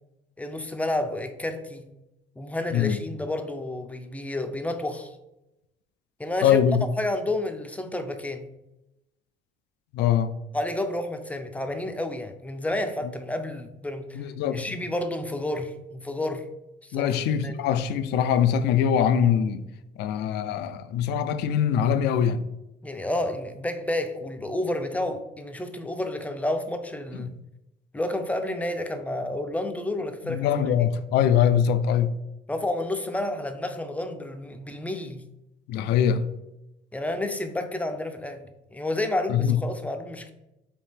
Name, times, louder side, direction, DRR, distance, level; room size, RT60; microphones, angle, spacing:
voice 1, 0.4-1.9 2.4-5.1 6.2-6.6 7.0-8.5 10.5-14.3 14.5-16.5 16.8-17.7 22.8-27.3 27.9-30.7 32.5-35.2 36.9-40.3, left 1 dB, 10° left, 0.4 m, -30 dB
voice 2, 6.4-6.8 9.9-10.3 14.1-14.6 16.9-19.6 20.0-22.4 30.2-32.1 35.7-36.3 39.3-39.6, left 8 dB, 80° left, 0.4 m, -23 dB
3.5 x 2.8 x 4.2 m
cardioid pair, 110°, 17 cm